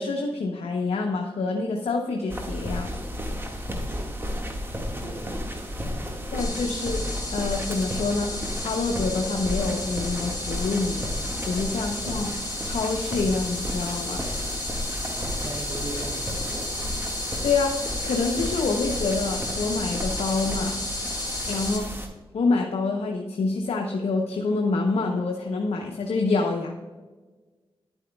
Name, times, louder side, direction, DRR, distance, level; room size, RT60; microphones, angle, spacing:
voice 1, 0.0-2.9 6.3-7.0 7.3-11.1 11.4-12.3 12.6-14.2 17.4-20.8 21.5-21.9 22.3-26.7, left 3 dB, 80° left, 2 dB, 0.7 m, -26 dB
Walking on tarmac road with intermittent cars driving by, 2.3-22.1, equal, 20° right, 1.7 m, -33 dB
voice 2, 3.7-4.2 5.0-5.3 11.6-12.3 14.8-16.7 21.4-21.7, right 2 dB, 85° right, -2 dB, 2.2 m, -40 dB
sound 1, 6.4-21.8, left 2 dB, 40° left, 2.1 m, -33 dB
10.5 x 9.0 x 2.3 m, 1.3 s
cardioid pair, 50°, 10 cm